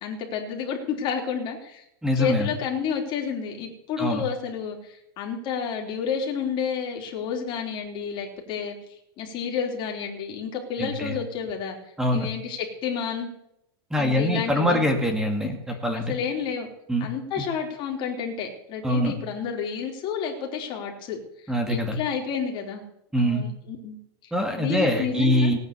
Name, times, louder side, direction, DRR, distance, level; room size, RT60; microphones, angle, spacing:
voice 1, 0.0-1.8 2.2-8.8 9.2-11.8 12.1-13.3 14.0-14.8 15.9-16.7 17.0-21.2 21.4-22.8 23.2-24.0 24.2-25.5, left 7 dB, 40° left, 2 dB, 3.6 m, -30 dB
voice 2, 2.0-2.5 4.0-4.2 10.8-11.1 12.0-12.3 13.9-16.1 16.9-17.1 17.4-17.5 18.8-19.1 21.5-22.0 23.1-23.4 24.3-25.6, equal, 5° right, 4 dB, 2.2 m, -24 dB
17.5 x 9.4 x 6.9 m, 0.80 s
supercardioid pair, 140°, 13 cm